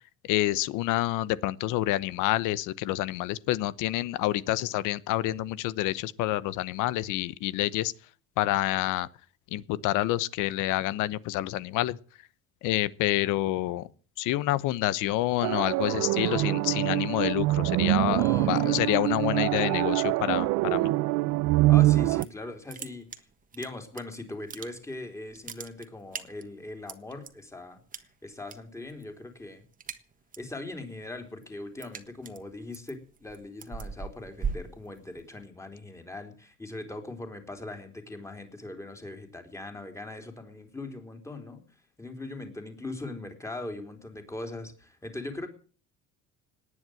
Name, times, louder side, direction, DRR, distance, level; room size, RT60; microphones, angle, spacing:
voice 1, 0.3-7.9 8.4-9.1 9.5-12.0 12.6-13.9 14.2-20.9, left 15 dB, 75° left, 1.0 m, -28 dB
sound 1, 15.4-22.2, right 19 dB, 85° right, 0.7 m, -24 dB
voice 2, 16.0-16.8 18.2-19.2 21.7-23.3 23.5-29.6 30.4-41.6 42.0-45.5, left 2 dB, 10° left, 3.5 m, -40 dB
sound 2, 21.9-22.4 22.7-24.0 24.3-25.0 25.3-27.3 27.9-28.6 28.9-29.2 29.5-30.5 30.9-35.5, right 5 dB, 25° right, 1.5 m, -39 dB
18.5 x 9.7 x 7.7 m
cardioid pair, 130°, 31 cm